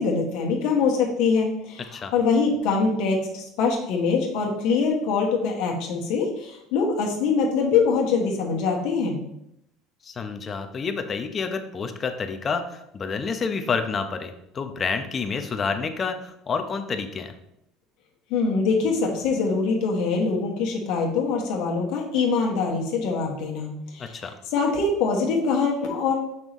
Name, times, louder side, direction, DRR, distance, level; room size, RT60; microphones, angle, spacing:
voice 1, 0.0-1.9 2.1-9.2 18.3-24.1 24.5-26.1, left 4 dB, 70° left, 0 dB, 1.4 m, -23 dB
voice 2, 10.0-17.3 24.0-24.3, left 5 dB, 35° left, 7 dB, 0.8 m, -29 dB
6.1 x 5.5 x 3.1 m, 0.81 s
supercardioid pair, 90°, 0 cm